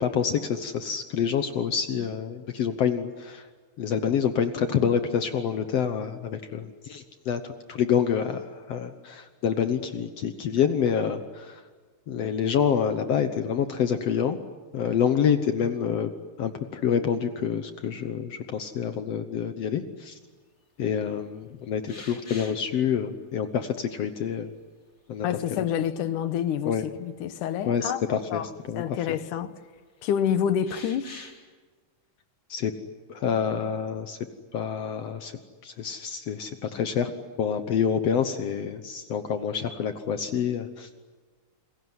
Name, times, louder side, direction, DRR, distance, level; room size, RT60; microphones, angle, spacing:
voice 1, 0.0-3.4 3.8-7.4 7.7-8.4 8.7-11.6 12.1-14.4 14.7-16.1 16.4-20.1 20.8-24.5 25.1-25.6 26.7-26.8 27.7-28.4 28.7-28.8 32.5-32.7 33.1-34.2 34.5-35.3 35.6-37.1 37.4-40.9, left 8 dB, 60° left, 2.0 m, -27 dB
sound 1, 21.9-22.7 24.2-24.3 25.2-26.0 26.4-26.5 28.5-28.6 30.6-31.4, left 2 dB, 20° left, 3.2 m, -44 dB
voice 2, 25.2-29.5 30.0-31.1, left 9 dB, 85° left, 2.7 m, -28 dB
28.5 x 21.5 x 9.6 m
omnidirectional pair, 3.5 m